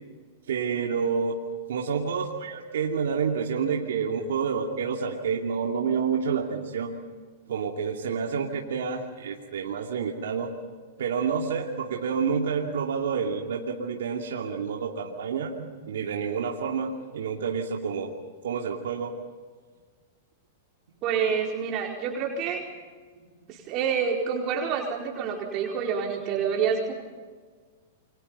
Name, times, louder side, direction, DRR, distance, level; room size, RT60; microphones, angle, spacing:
voice 1, 0.5-1.4 1.7-7.0 7.5-10.5 11.0-18.1 18.4-19.2 23.2-23.3, right 6 dB, 75° right, 0 dB, 2.6 m, -29 dB
voice 2, 21.0-22.6 23.5-26.9, right 6 dB, 40° right, -1 dB, 4.4 m, -27 dB
29.0 x 25.0 x 5.5 m, 1.5 s
hypercardioid pair, 115°, 0 cm